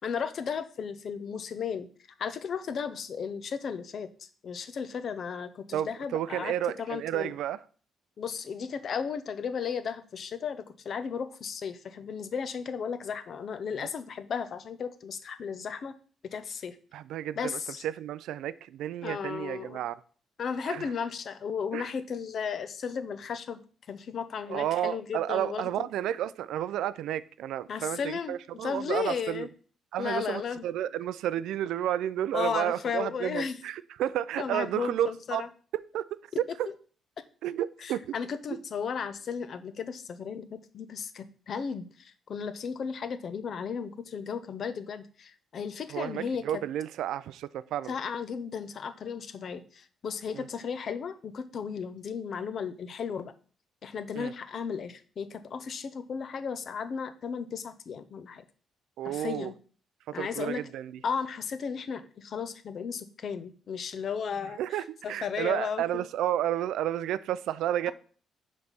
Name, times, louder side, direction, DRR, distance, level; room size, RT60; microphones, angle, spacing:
voice 1, 0.0-1.9 2.2-7.3 8.2-15.9 16.3-16.8 17.4-17.8 19.0-19.8 20.4-23.6 23.9-25.9 27.7-29.5 30.0-30.6 32.3-33.6 34.4-35.5 37.8-46.4 47.9-53.3 53.8-58.4 59.0-59.5 60.1-60.6 61.0-66.0, left 6 dB, 50° left, 0.6 m, -35 dB
voice 2, 5.7-7.6 13.8-13.9 16.9-20.0 20.7-20.9 21.7-21.9 24.5-29.5 29.9-35.4 35.9-36.0 37.4-38.2 45.9-47.9 50.3-50.5 54.1-54.3 59.0-59.5 60.1-61.0 64.6-67.9, right 11 dB, 90° right, 0.3 m, -31 dB
5.3 x 4.1 x 6.0 m
cardioid pair, 135°, 0 cm